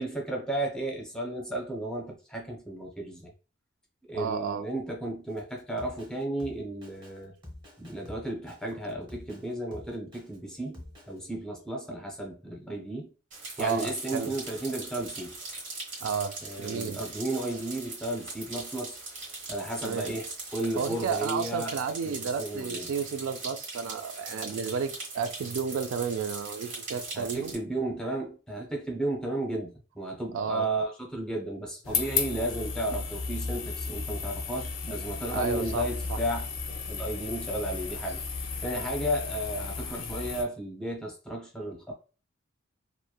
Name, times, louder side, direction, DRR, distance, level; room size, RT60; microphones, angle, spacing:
voice 1, 0.0-3.3 4.1-7.3 7.8-13.1 13.6-15.3 16.4-19.0 19.5-21.8 22.0-22.9 27.1-36.5 36.9-38.2 38.6-41.9, right 1 dB, 5° left, 0.6 m, -34 dB
voice 2, 4.1-4.6 13.6-14.3 16.0-17.0 19.8-20.2 20.8-27.6 30.3-30.7 35.3-35.8 36.1-36.2, right 6 dB, 80° right, 0.3 m, -32 dB
Drum kit, 5.3-11.2, left 1 dB, 20° right, 0.8 m, -48 dB
sound 1, 13.3-27.6, right 3 dB, 65° right, 1.3 m, -41 dB
sound 2, 31.8-40.4, left 5 dB, 75° left, 0.5 m, -34 dB
3.0 x 2.1 x 2.2 m
head